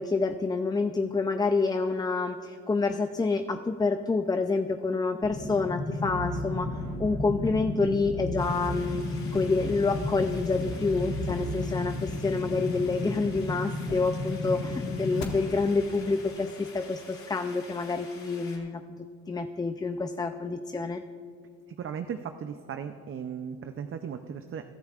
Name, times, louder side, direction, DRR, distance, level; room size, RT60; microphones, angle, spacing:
voice 1, 0.0-18.8 19.3-21.0, left 3 dB, 15° left, 8 dB, 0.4 m, -28 dB
sound 1, 5.2-15.2, left 2 dB, 60° left, 1.9 m, -34 dB
sound 2, 6.0-9.1 9.4-11.9, right 2 dB, 80° right, 2.8 m, -39 dB
sound 3, 8.4-18.6, left 3 dB, 45° left, 2.9 m, -49 dB
voice 2, 21.8-24.6, right 7 dB, 45° right, 8 dB, 0.5 m, -36 dB
21.5 x 12.0 x 2.4 m, 2.2 s
cardioid pair, 90°, 30 cm